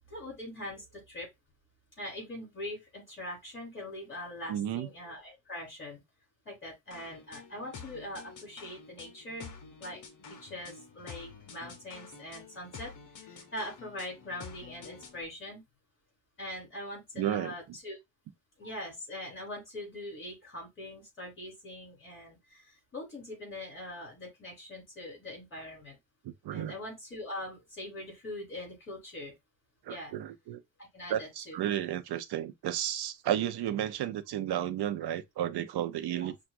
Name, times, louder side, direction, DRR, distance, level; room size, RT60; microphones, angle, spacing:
voice 1, 0.1-1.3 2.0-6.0 6.4-9.5 9.8-10.0 10.3-12.9 13.2-15.6 16.4-18.0 18.6-26.0 26.5-29.3 29.9-30.1 30.8-31.6 36.2-36.3, left 1 dB, 25° left, 2.9 m, -42 dB
voice 2, 4.5-4.9 17.2-17.8 26.2-26.7 29.8-30.6 31.1-36.4, right 11 dB, 60° right, 0.6 m, -33 dB
sound 1, 6.9-15.2, left 5 dB, 45° left, 0.8 m, -49 dB
5.8 x 2.4 x 2.5 m
cardioid pair, 170°, 44 cm